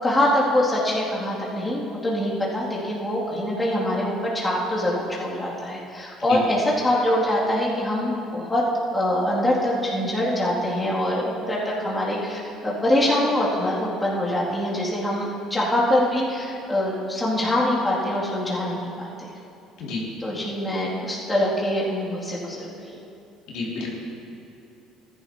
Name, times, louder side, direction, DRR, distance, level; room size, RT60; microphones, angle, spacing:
voice 1, 0.0-8.6 8.9-19.3 20.2-23.0, left 1 dB, 15° left, -7 dB, 2.6 m, -24 dB
voice 2, 23.5-23.9, left 3 dB, 75° left, -5 dB, 2.7 m, -29 dB
14.0 x 11.0 x 2.9 m, 2.8 s
cardioid pair, 110°, 0 cm